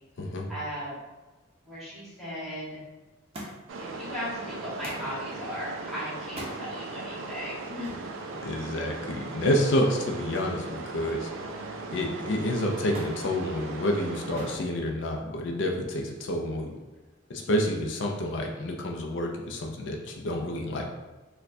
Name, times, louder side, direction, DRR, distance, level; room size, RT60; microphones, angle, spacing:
voice 1, 0.5-1.0 1.6-2.8 3.8-8.0, equal, ahead, -9 dB, 1.1 m, -37 dB
Thump thud, 3.3-3.8 4.8-5.1 6.2-6.6 7.8-8.1 10.4-10.7 11.0-11.6 12.9-13.2 14.4-14.6 15.6-16.1 17.0-17.1, right 1 dB, 30° right, 0.6 m, -42 dB
sound 1, 3.7-14.6, right 3 dB, 70° right, 0.4 m, -38 dB
voice 2, 8.4-11.3 11.9-16.8 17.3-20.8, left 1 dB, 60° left, 1 dB, 0.4 m, -29 dB
4.3 x 2.2 x 2.6 m, 1.2 s
head